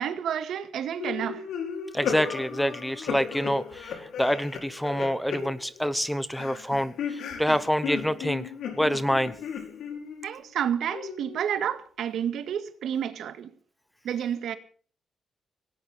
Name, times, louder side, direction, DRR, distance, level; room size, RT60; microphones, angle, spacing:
voice 1, 0.0-1.5 10.2-13.5 14.0-14.6, right 9 dB, 65° right, 1.9 m, -30 dB
sound 1, 1.0-6.0 6.3-10.4 10.9-11.6, left 7 dB, 75° left, 5.1 m, -35 dB
voice 2, 1.9-8.5 8.8-9.3, equal, ahead, 0.9 m, -27 dB
18.5 x 17.5 x 4.3 m
cardioid pair, 165°, 0 cm